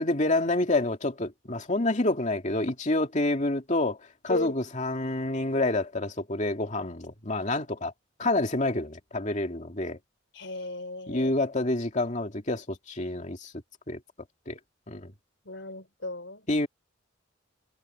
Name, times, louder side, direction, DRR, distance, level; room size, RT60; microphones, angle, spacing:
voice 1, 0.0-4.0 4.2-7.9 8.2-10.0 11.1-13.5 13.9-14.0 14.5-14.6 14.9-15.1 16.5-16.7, left 2 dB, 40° left, 2.5 m, -28 dB
voice 2, 10.3-11.3 15.5-16.5, left 2 dB, 70° left, 4.2 m, -35 dB
head